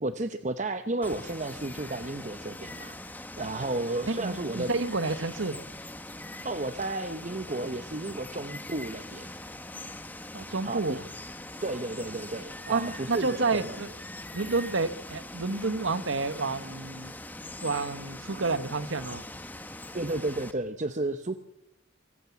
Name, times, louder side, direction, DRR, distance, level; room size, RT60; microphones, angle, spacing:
voice 1, 0.0-3.0 3.4-4.7 6.3-9.3 10.6-11.0 11.6-13.8 19.9-21.4, right 2 dB, 35° right, 9 dB, 0.8 m, -33 dB
Water, 1.0-20.5, left 1 dB, 10° left, 1.2 m, -42 dB
voice 2, 4.1-5.6 10.3-11.0 12.7-13.9 14.3-17.1 17.6-19.2, right 3 dB, 80° right, 12 dB, 1.3 m, -30 dB
24.5 x 15.5 x 7.1 m, 0.91 s
head